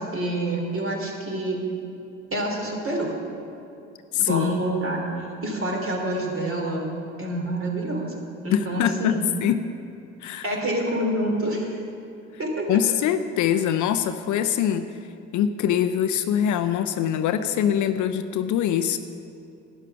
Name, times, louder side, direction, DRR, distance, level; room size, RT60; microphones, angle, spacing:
voice 1, 0.0-1.6 2.3-3.1 4.2-6.9 7.2-8.1 8.4-9.2 10.4-11.8 12.4-12.7, right 1 dB, 35° right, 0 dB, 3.1 m, -27 dB
voice 2, 4.1-4.6 8.5-9.6 10.2-10.5 12.7-14.9 15.3-19.0, left 9 dB, 55° left, 10 dB, 0.6 m, -23 dB
11.5 x 9.9 x 5.8 m, 2.7 s
hypercardioid pair, 55°, 37 cm